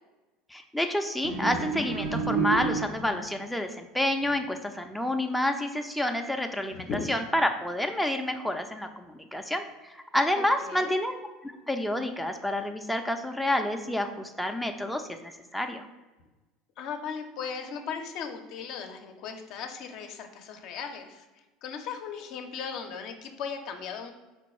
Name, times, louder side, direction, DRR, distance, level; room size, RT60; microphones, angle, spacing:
voice 1, 0.5-15.9, left 1 dB, ahead, 4 dB, 0.4 m, -29 dB
sound 1, 1.2-3.3, right 5 dB, 75° right, 0.6 m, -30 dB
voice 2, 10.4-11.0 16.8-21.2 21.6-24.1, left 6 dB, 60° left, 5 dB, 0.5 m, -37 dB
4.4 x 2.3 x 4.2 m, 1.2 s
hypercardioid pair, 80°, 0 cm